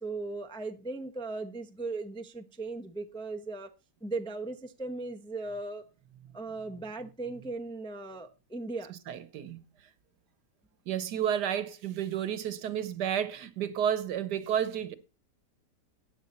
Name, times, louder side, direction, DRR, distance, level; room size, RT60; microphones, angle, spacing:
voice 1, 0.0-3.7 4.0-5.9 6.3-8.9, right 3 dB, 5° left, 0.5 m, -37 dB
voice 2, 9.1-9.6 10.9-15.0, right 9 dB, 75° right, 1.5 m, -31 dB
13.0 x 9.0 x 4.2 m
omnidirectional pair, 1.8 m